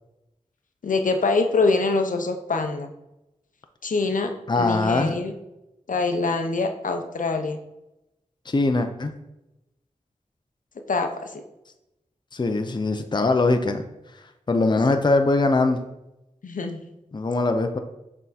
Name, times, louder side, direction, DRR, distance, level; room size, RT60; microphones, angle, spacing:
voice 1, 0.8-2.9 3.8-5.3 5.9-7.6 10.9-11.4 16.4-16.8, left 3 dB, 75° left, 5 dB, 0.7 m, -24 dB
voice 2, 4.5-5.1 8.5-9.1 12.3-13.8 14.5-15.8 17.1-17.8, left 3 dB, 35° left, 6 dB, 0.5 m, -21 dB
6.7 x 3.6 x 4.1 m, 0.91 s
wide cardioid pair, 65°, 14 cm